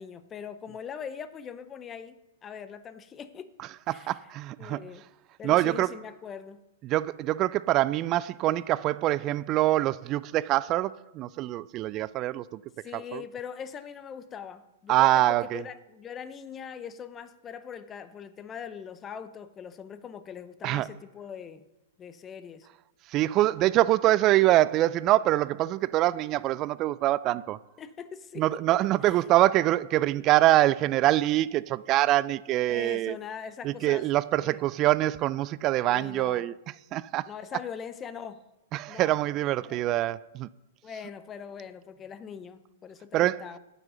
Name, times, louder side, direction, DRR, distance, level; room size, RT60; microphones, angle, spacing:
voice 1, 0.0-3.5 3.9-4.1 4.6-5.0 5.4-6.6 12.8-21.6 22.0-22.7 27.8-28.8 29.0-29.3 29.9-30.2 32.7-34.1 34.4-34.6 35.9-36.4 37.3-38.4 38.9-39.1 39.6-39.8 40.8-43.6, left 7 dB, 25° left, 0.6 m, -41 dB
voice 2, 3.9-4.8 5.4-5.9 6.8-12.6 12.9-13.2 14.9-15.6 20.6-20.9 23.1-27.6 28.4-33.2 33.6-36.5 36.9-37.3 38.7-40.5 43.1-43.4, right 15 dB, 35° right, 0.3 m, -24 dB
8.8 x 6.2 x 6.6 m
hypercardioid pair, 115°, 0 cm